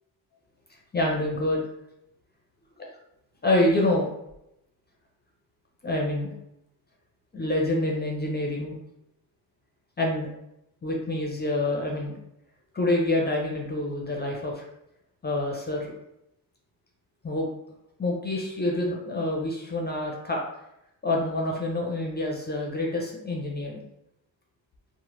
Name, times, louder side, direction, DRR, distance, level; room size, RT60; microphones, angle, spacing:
voice 1, 0.9-1.6 2.8-2.9 3.4-4.1 5.8-6.3 7.3-8.7 10.0-10.3 10.8-12.2 12.7-14.6 15.2-15.9 17.2-17.5 18.0-20.4 21.0-23.8, left 1 dB, 25° left, -1 dB, 0.5 m, -27 dB
3.0 x 2.1 x 3.0 m, 0.83 s
cardioid pair, 95°, 45 cm